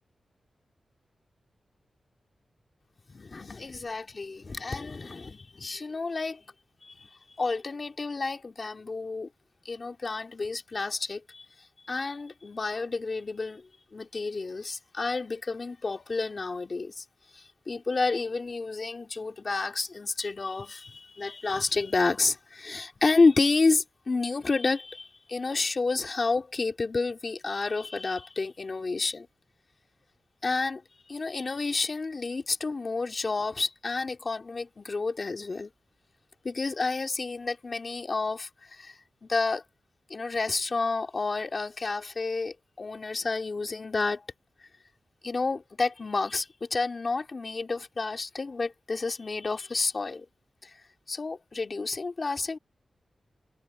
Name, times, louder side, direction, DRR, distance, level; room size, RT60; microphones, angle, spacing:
voice 1, 3.1-6.5 6.8-7.1 7.4-9.3 9.6-17.0 17.3-29.3 30.4-35.7 36.4-39.6 40.1-44.2 45.2-50.3 50.6-50.7 51.1-52.6, left 3 dB, 40° left, 2.7 m, -30 dB
wide cardioid pair, 130°, 0 cm